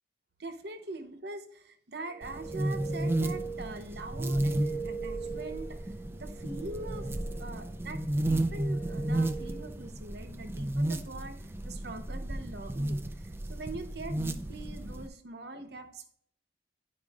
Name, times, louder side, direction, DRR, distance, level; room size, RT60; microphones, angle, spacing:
voice 1, 0.4-7.1 7.4-16.1, right 2 dB, 60° right, 7 dB, 0.9 m, -43 dB
sound 1, 2.0-9.9, right 5 dB, 90° left, 1.2 m, -42 dB
sound 2, 2.2-15.1, right 1 dB, 15° right, 0.3 m, -33 dB
11.5 x 4.8 x 2.4 m, 0.65 s
head